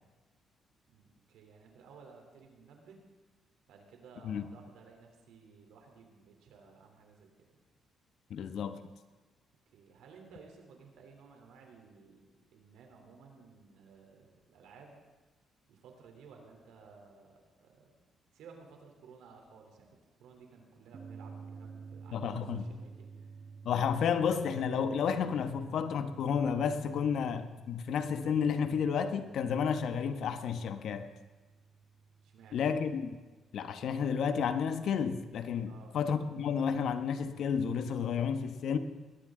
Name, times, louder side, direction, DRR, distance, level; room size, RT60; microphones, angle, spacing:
voice 1, 0.9-3.0 3.7-7.3 9.7-15.0 15.7-17.9 18.3-23.5 32.2-32.7 35.7-36.0, right 5 dB, 85° right, 2 dB, 3.5 m, -56 dB
voice 2, 8.3-8.8 22.1-22.7 23.6-31.1 32.5-33.2 33.5-38.8, left 7 dB, 70° left, 9 dB, 1.1 m, -31 dB
sound 1, 20.9-33.9, right 5 dB, 50° right, 1.2 m, -52 dB
20.5 x 17.5 x 3.9 m, 1.3 s
cardioid pair, 90°, 0 cm